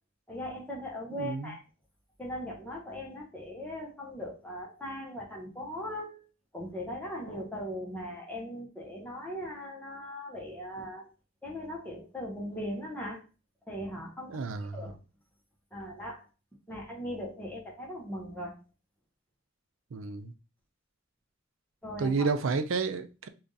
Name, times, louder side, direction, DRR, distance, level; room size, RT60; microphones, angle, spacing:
voice 1, 0.3-1.6 2.2-6.3 6.5-11.1 11.4-13.2 13.7-14.4 14.7-15.0 15.7-16.3 16.7-18.6 21.8-22.3, equal, 10° left, 1.0 m, -39 dB
voice 2, 1.2-1.5 14.3-14.9 19.9-20.3 22.0-23.3, right 4 dB, 75° right, 0.4 m, -31 dB
3.5 x 2.5 x 3.9 m
head